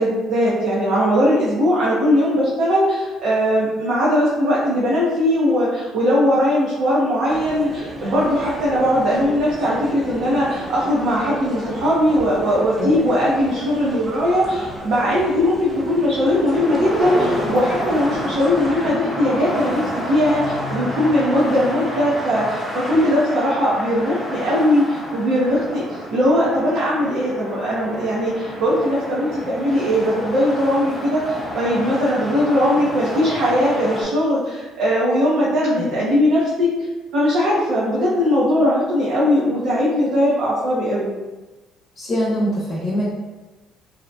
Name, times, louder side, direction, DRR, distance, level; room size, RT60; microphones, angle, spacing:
voice 1, 0.0-25.8 26.1-36.7 37.1-41.1, equal, 70° right, -7 dB, 0.6 m, -19 dB
sound 1, 7.3-18.9, right 1 dB, 15° right, 0.7 m, -35 dB
sound 2, 16.5-34.0, equal, 10° left, 0.8 m, -29 dB
voice 2, 42.0-43.1, equal, 50° left, -6 dB, 0.7 m, -23 dB
2.7 x 2.1 x 2.5 m, 1.2 s
supercardioid pair, 80°, 0 cm